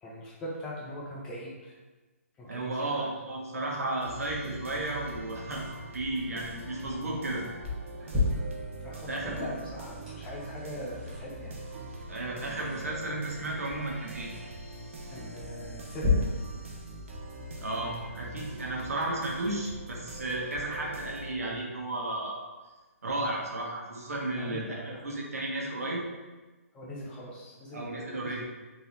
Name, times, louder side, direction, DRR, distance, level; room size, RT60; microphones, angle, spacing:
voice 1, 0.0-1.7 2.4-3.1 3.8-3.9 8.1-11.6 11.9-13.2 15.1-16.5 19.0-19.1 24.3-25.0 26.7-28.4, equal, 10° left, -4 dB, 0.5 m, -42 dB
voice 2, 2.4-7.4 8.0-8.1 9.1-9.3 12.1-14.3 17.6-22.5 23.0-26.0 27.7-28.4, right 2 dB, 75° right, -2 dB, 1.3 m, -34 dB
sound 1, 4.0-21.3, right 1 dB, 55° right, 0.9 m, -43 dB
sound 2, 7.6-16.1, left 2 dB, 10° right, 1.4 m, -38 dB
3.8 x 3.4 x 4.1 m, 1.2 s
hypercardioid pair, 165°, 8 cm